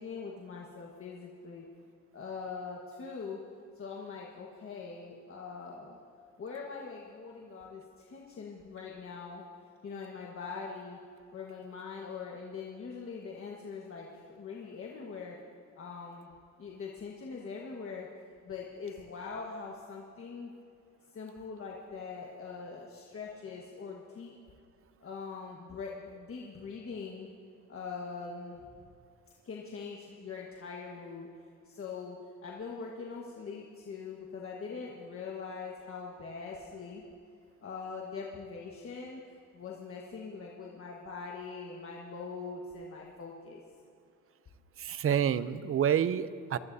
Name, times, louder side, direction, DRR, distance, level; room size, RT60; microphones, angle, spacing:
voice 1, 0.0-1.6 2.1-3.4 3.7-6.0 6.4-9.4 9.8-11.0 11.3-15.3 15.8-16.3 16.6-18.1 18.5-20.5 21.1-24.3 25.0-27.3 27.7-28.6 29.4-31.3 31.6-32.2 32.4-37.0 37.6-39.2 39.5-43.6, left 5 dB, 45° left, -2 dB, 1.5 m, -42 dB
voice 2, 44.8-46.6, right 9 dB, 45° right, 15 dB, 0.6 m, -28 dB
23.0 x 13.5 x 2.7 m, 2.5 s
cardioid pair, 90°, 30 cm